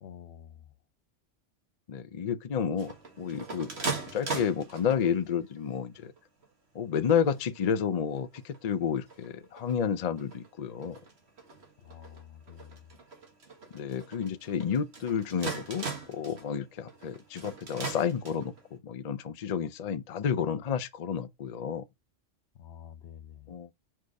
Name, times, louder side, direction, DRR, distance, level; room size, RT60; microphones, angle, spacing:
voice 1, 0.0-0.7 11.8-12.9 22.5-23.5, left 9 dB, 70° left, 0.9 m, -48 dB
voice 2, 1.9-3.7 4.1-6.1 6.7-11.0 13.7-21.8 23.5-23.7, left 7 dB, 50° left, 0.5 m, -31 dB
sound 1, 2.8-5.3 5.9-6.5 6.9-7.0 7.2-7.8 8.2-18.7, right 4 dB, 60° right, 1.8 m, -40 dB
4.9 x 4.5 x 4.5 m
omnidirectional pair, 1.3 m